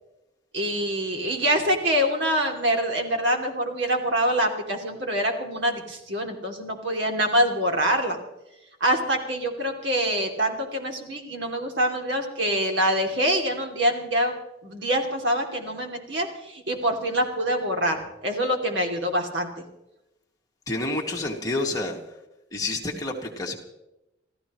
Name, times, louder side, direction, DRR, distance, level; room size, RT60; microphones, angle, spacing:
voice 1, 0.5-8.2 8.8-14.4 14.6-19.5, equal, 80° right, 2 dB, 2.7 m, -25 dB
voice 2, 20.7-22.0 22.5-23.5, left 2 dB, 20° left, -1 dB, 2.1 m, -28 dB
29.0 x 14.0 x 3.1 m, 0.92 s
head